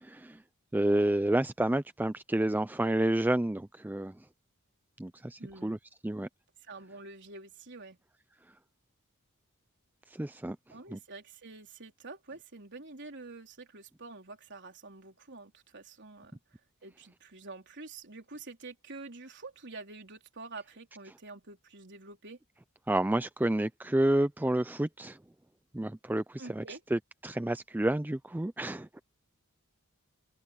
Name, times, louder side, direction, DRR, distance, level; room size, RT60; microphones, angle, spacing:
voice 1, 0.0-0.4 0.7-4.1 5.0-5.8 6.0-6.3 10.2-10.6 10.9-11.0 22.9-25.2 25.7-26.6 26.9-29.0, right 1 dB, 10° right, 0.4 m, -29 dB
voice 2, 5.4-5.8 6.7-8.0 10.7-16.4 16.8-22.4 26.4-26.8, right 3 dB, 50° right, 4.0 m, -47 dB
head